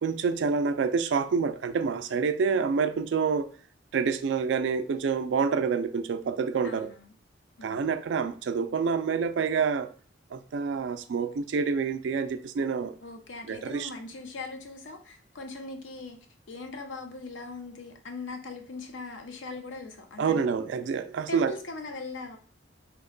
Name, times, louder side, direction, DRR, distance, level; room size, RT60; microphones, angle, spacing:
voice 1, 0.0-3.5 3.9-6.9 7.6-9.9 10.3-13.0 13.5-13.9 20.2-21.5, right 5 dB, 75° right, 0.3 m, -27 dB
voice 2, 6.6-7.1 7.6-8.0 13.0-16.2 16.5-20.4 21.3-22.4, left 3 dB, 90° left, 0.6 m, -40 dB
3.0 x 2.1 x 3.7 m
head